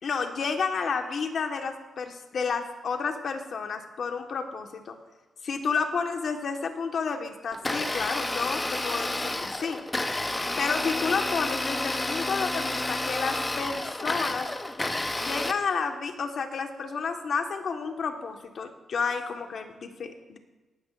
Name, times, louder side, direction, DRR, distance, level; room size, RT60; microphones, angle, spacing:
voice 1, 0.0-5.0 5.4-9.8 10.6-14.5 15.2-20.4, left 5 dB, 65° left, 5 dB, 1.4 m, -31 dB
Domestic sounds home sounds, 7.5-15.5, left 2 dB, 20° left, 0.8 m, -30 dB
17.5 x 12.5 x 2.5 m, 1.2 s
cardioid pair, 85°, 0 cm